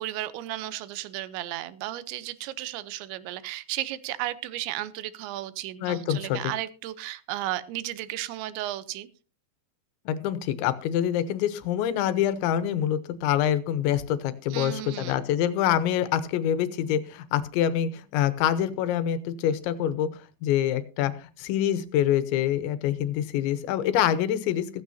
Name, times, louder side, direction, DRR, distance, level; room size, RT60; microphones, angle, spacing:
voice 1, 0.0-9.1 14.5-15.2, right 15 dB, 80° right, 15 dB, 3.1 m, -34 dB
voice 2, 5.8-6.4 10.1-24.8, left 10 dB, 85° left, 13 dB, 3.3 m, -26 dB
16.0 x 15.0 x 2.7 m, 0.33 s
omnidirectional pair, 5.2 m